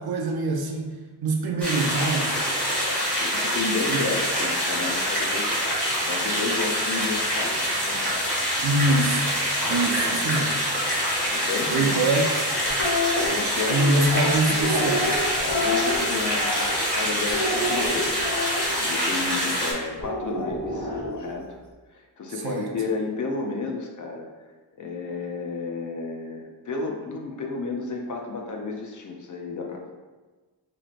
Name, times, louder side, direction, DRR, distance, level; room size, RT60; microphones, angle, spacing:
voice 1, 0.0-2.4 3.9-4.0 8.6-9.4 9.6-10.7 11.7-12.6 13.7-15.1 22.4-22.7, right 2 dB, 60° right, 2 dB, 0.6 m, -25 dB
sound 1, 1.6-19.7, equal, 5° left, 1.5 m, -25 dB
voice 2, 3.2-8.2 10.0-10.2 11.3-12.1 13.2-14.9 15.4-16.6 16.9-21.6 21.9-24.3 24.8-29.9, left 4 dB, 45° left, 1 dB, 0.5 m, -32 dB
sound 2, 12.7-13.2 14.0-16.9 17.3-18.8 20.0-21.3, left 2 dB, 70° left, 1.3 m, -28 dB
4.6 x 2.9 x 2.5 m, 1.3 s
wide cardioid pair, 165°, 42 cm